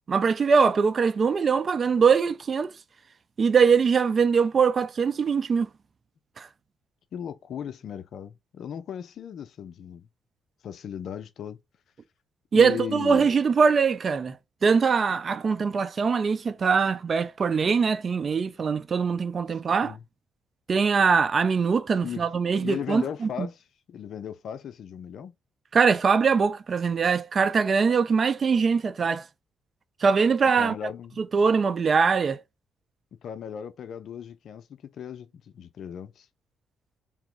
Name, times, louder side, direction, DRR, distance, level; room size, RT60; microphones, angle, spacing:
voice 1, 0.1-2.7 3.4-5.7 6.4-6.5 12.5-14.4 14.6-20.0 20.7-23.5 25.7-29.3 30.0-30.7 31.2-32.4, right 5 dB, 40° right, 0.6 m, -22 dB
voice 2, 7.1-10.1 10.6-11.6 12.5-13.3 19.5-20.0 22.0-22.3 22.6-23.6 23.9-25.3 30.6-31.2 33.2-34.7 34.9-36.3, left 8 dB, 65° left, 0.6 m, -37 dB
3.6 x 2.9 x 4.5 m
cardioid pair, 90°, 0 cm